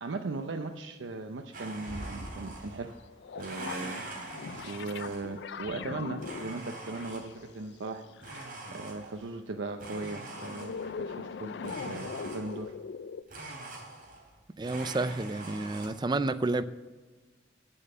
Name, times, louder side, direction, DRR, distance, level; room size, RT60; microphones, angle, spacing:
voice 1, 0.0-2.9 3.4-4.0 4.6-8.4 8.7-12.7, right 3 dB, 80° right, 0.6 m, -38 dB
Domestic sounds home sounds, 1.5-2.9 3.3-5.5 6.2-7.5 8.2-9.3 9.8-11.0 11.6-12.7 13.3-14.4 14.6-15.9, right 2 dB, 50° right, 3.3 m, -43 dB
sound 1, 1.7-3.3, equal, 30° left, 1.9 m, -44 dB
sound 2, 2.9-8.5 9.5-13.2, left 5 dB, 60° left, 0.4 m, -41 dB
voice 2, 14.6-16.6, right 2 dB, 25° right, 0.4 m, -30 dB
8.9 x 8.6 x 6.6 m
head